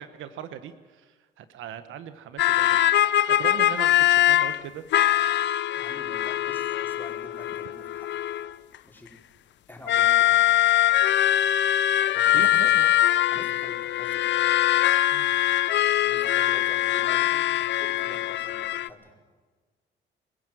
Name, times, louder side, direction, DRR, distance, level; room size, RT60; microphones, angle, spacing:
voice 1, 0.0-2.9 3.3-4.8 12.3-12.9 13.3-13.5 15.1-15.3, right 10 dB, 85° right, 11 dB, 1.1 m, -39 dB
sound 1, 2.4-4.6 4.9-8.8 9.9-18.9, left 13 dB, 65° left, 0.6 m, -22 dB
voice 2, 5.7-8.1 8.8-9.1 9.7-10.8 12.1-12.7 13.2-14.4 16.0-19.1, left 1 dB, 10° left, -1 dB, 5.0 m, -46 dB
24.5 x 15.5 x 7.7 m, 1.4 s
cardioid pair, 90°, 20 cm